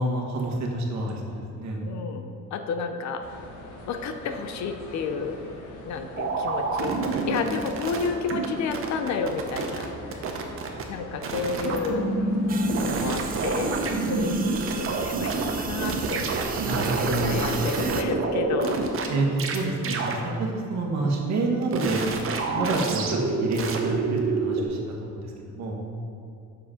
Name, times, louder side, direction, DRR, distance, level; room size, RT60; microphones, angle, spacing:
voice 1, 0.0-1.9 16.6-17.4 19.1-22.0 22.3-25.8, right 2 dB, 70° right, 1 dB, 1.4 m, -28 dB
voice 2, 1.9-3.2 3.9-5.4 5.8-6.9 7.3-10.4 10.9-12.1 12.8-14.4 14.8-16.5 17.1-18.8 22.5-22.8, left 5 dB, 70° left, 7 dB, 0.7 m, -31 dB
sound 1, 3.2-12.9, left 1 dB, 85° left, 1.5 m, -43 dB
sound 2, 6.2-8.5 8.7-9.9 10.1-10.8 11.2-15.5 15.8-19.1 19.4-19.6 19.8-20.1 21.7-24.6, right 3 dB, 45° right, 0.9 m, -27 dB
sound 3, 12.5-18.0, right 6 dB, 30° right, 0.5 m, -34 dB
7.5 x 6.3 x 5.1 m, 2.6 s
cardioid pair, 175°, 29 cm